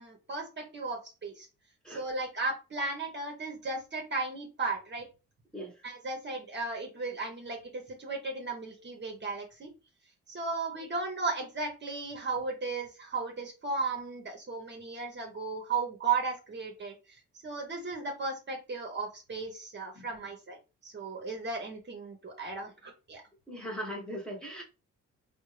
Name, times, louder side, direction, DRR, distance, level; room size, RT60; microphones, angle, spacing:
voice 1, 0.0-1.5 1.9-5.1 5.8-9.7 10.3-20.6 20.8-23.2, right 3 dB, 35° right, 1.0 m, -35 dB
voice 2, 23.5-24.6, equal, 5° left, 1.2 m, -39 dB
3.6 x 2.4 x 3.2 m
cardioid pair, 90°, 30 cm